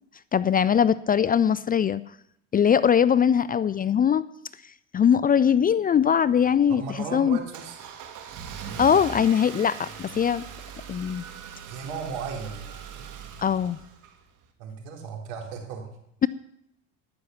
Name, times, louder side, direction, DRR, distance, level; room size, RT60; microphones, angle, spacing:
voice 1, 0.3-2.0 2.5-4.2 4.9-7.4 8.8-10.4 10.9-11.2 13.4-13.8, left 8 dB, 25° left, 18 dB, 0.4 m, -21 dB
Car / Engine starting, 6.3-14.5, right 7 dB, 55° right, 2.4 m, -41 dB
voice 2, 6.7-7.8 11.6-13.0 14.6-15.8, right 6 dB, 75° right, 2 dB, 4.0 m, -36 dB
13.0 x 10.5 x 7.1 m, 0.76 s
supercardioid pair, 90°, 37 cm